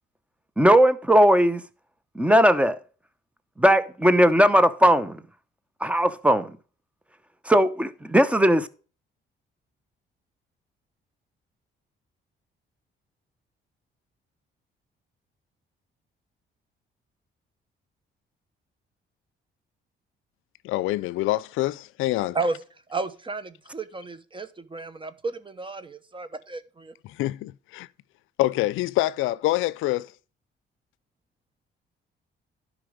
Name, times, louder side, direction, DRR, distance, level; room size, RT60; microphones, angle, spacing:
voice 1, 0.6-1.6 2.1-2.8 3.6-5.2 5.8-6.5 7.5-8.7, equal, 5° right, 0.8 m, -18 dB
voice 2, 20.6-22.4 27.0-27.9 28.4-30.1, left 16 dB, 90° left, 0.4 m, -26 dB
voice 3, 22.9-26.9, right 3 dB, 25° right, 1.0 m, -32 dB
11.5 x 5.2 x 5.1 m
cardioid pair, 90°, 20 cm